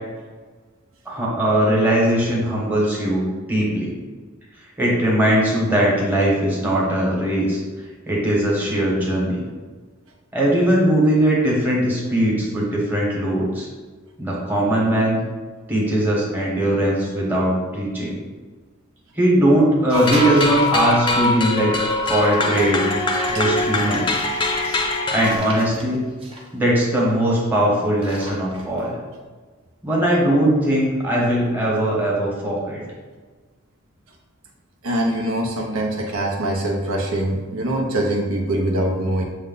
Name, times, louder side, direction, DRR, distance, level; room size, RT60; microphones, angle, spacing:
voice 1, 1.0-3.2 3.5-3.9 4.8-7.6 8.1-9.4 10.3-13.7 14.2-15.2 15.7-18.2 19.1-21.8 22.1-22.8 23.3-24.1 25.1-26.0 26.5-29.0 29.8-32.8, right 1 dB, 10° right, -5 dB, 1.0 m, -20 dB
sound 1, 19.9-25.4, left 2 dB, 25° left, 0.4 m, -23 dB
sound 2, 19.9-20.8 21.7-27.5 27.8-28.8, right 1 dB, 25° right, 0.7 m, -36 dB
voice 2, 34.8-39.2, right 1 dB, 75° right, 0 dB, 0.7 m, -23 dB
6.3 x 2.2 x 3.8 m, 1.4 s
head